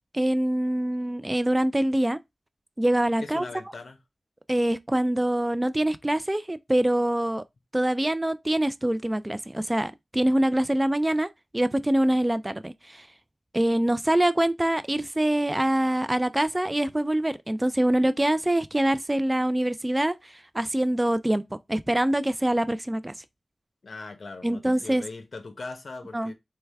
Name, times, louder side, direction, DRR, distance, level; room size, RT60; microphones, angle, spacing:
voice 1, 0.1-2.2 2.8-3.5 4.5-7.4 7.7-13.1 13.5-21.4 21.7-23.1 24.4-25.0 26.1-26.3, right 1 dB, 20° right, 0.4 m, -24 dB
voice 2, 3.2-4.0 23.8-26.3, left 3 dB, 70° left, 0.9 m, -40 dB
4.7 x 2.2 x 3.3 m
cardioid pair, 45°, 0 cm